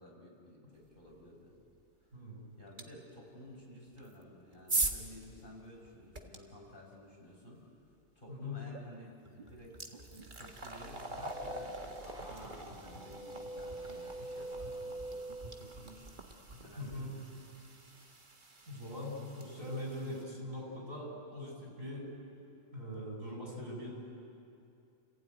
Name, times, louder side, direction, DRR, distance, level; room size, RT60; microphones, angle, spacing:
voice 1, 0.0-1.5 2.0-2.2 2.6-7.6 8.2-16.2 16.6-17.3, left 1 dB, 40° left, -2 dB, 5.7 m, -53 dB
sound 1, 2.8-2.9 3.9-6.4 8.7-8.8 9.3-20.2, right 3 dB, 35° right, 1.7 m, -42 dB
voice 2, 8.3-8.6 16.8-17.1 18.7-22.1 22.7-23.9, left 1 dB, 70° right, -2 dB, 7.3 m, -41 dB
sound 2, 11.0-15.8 16.2-16.6, right 1 dB, 5° right, 6.8 m, -45 dB
30.0 x 16.0 x 9.4 m, 2.6 s
omnidirectional pair, 1.4 m